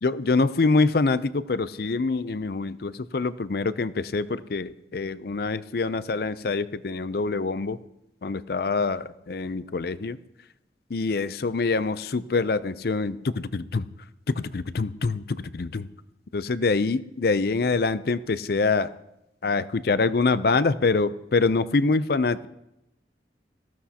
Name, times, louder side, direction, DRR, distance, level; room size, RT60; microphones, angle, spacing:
voice 1, 0.0-7.8 8.2-10.2 10.9-13.9 14.3-15.9 16.3-18.9 19.4-22.5, left 3 dB, 60° left, 15 dB, 0.5 m, -25 dB
18.5 x 14.5 x 2.9 m, 0.88 s
head